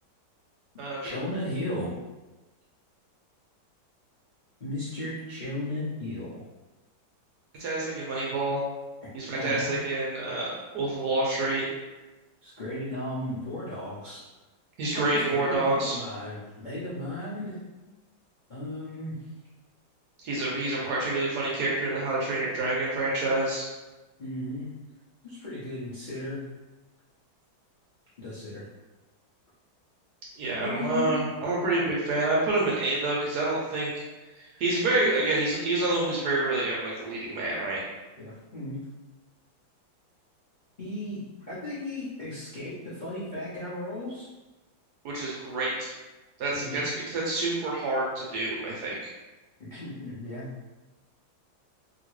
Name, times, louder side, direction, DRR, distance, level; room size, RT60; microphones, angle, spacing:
voice 1, 1.0-1.9 4.6-6.4 9.0-9.7 12.4-14.2 14.9-17.6 18.5-19.1 24.2-24.7 25.2-26.5 28.2-28.6 30.6-31.3 34.5-34.6 35.0-35.2 38.2-38.8 40.8-41.2 41.5-44.3 46.5-46.8 49.6-50.5, left 1 dB, 70° left, -11 dB, 0.4 m, -35 dB
voice 2, 7.6-8.6 9.1-11.7 14.8-16.0 20.2-23.7 30.4-34.0 34.4-37.8 45.0-46.0 46.4-49.1, right 2 dB, 70° right, -4 dB, 1.0 m, -28 dB
2.9 x 2.8 x 3.0 m, 1.1 s
omnidirectional pair, 2.2 m